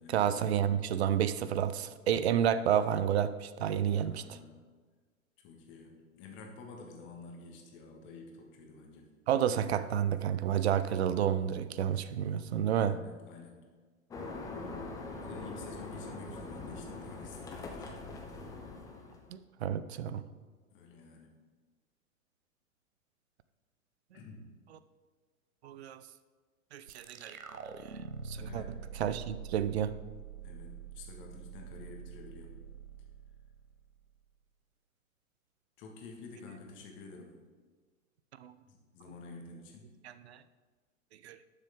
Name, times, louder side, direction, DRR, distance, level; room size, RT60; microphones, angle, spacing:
voice 1, 0.1-4.4 9.3-12.9 19.3-20.2 25.6-26.0 26.7-27.4 28.3-28.6 29.0-29.9 38.4-38.5 40.0-40.4 41.2-41.4, right 9 dB, 50° right, 14 dB, 0.6 m, -30 dB
voice 2, 4.0-4.6 5.4-9.1 12.8-13.6 15.2-18.1 20.7-21.4 24.1-24.5 28.4-28.8 30.4-32.5 35.8-37.3 38.7-39.9, left 3 dB, 30° left, 1 dB, 1.7 m, -50 dB
sound 1, 14.1-19.3, left 3 dB, 10° left, 0.6 m, -43 dB
sound 2, 26.9-34.2, right 6 dB, 85° right, 0.7 m, -46 dB
11.0 x 6.6 x 3.7 m, 1.5 s
figure-of-eight pair, 105°, 42 cm